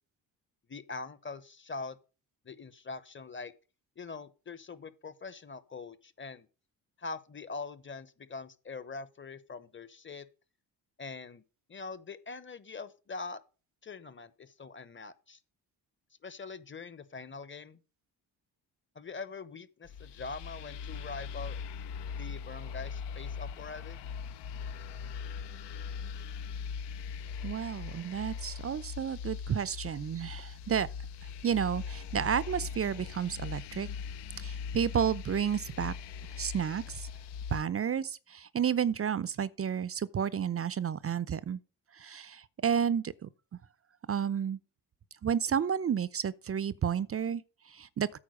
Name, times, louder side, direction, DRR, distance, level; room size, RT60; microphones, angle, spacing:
voice 1, 0.7-2.0 2.4-3.5 4.0-6.5 7.0-10.3 11.0-11.4 11.7-13.4 13.8-15.4 16.2-17.8 18.9-21.6 22.1-24.0, left 4 dB, 25° left, 1.0 m, -43 dB
sound 1, 19.9-37.6, left 6 dB, 65° left, 0.7 m, -40 dB
voice 2, 27.4-30.9 31.4-33.9 34.4-35.9 36.4-37.1 37.5-41.6 41.9-43.3 44.1-44.6 45.2-48.2, right 8 dB, 30° right, 0.6 m, -31 dB
8.7 x 4.5 x 6.4 m
supercardioid pair, 60°, 45 cm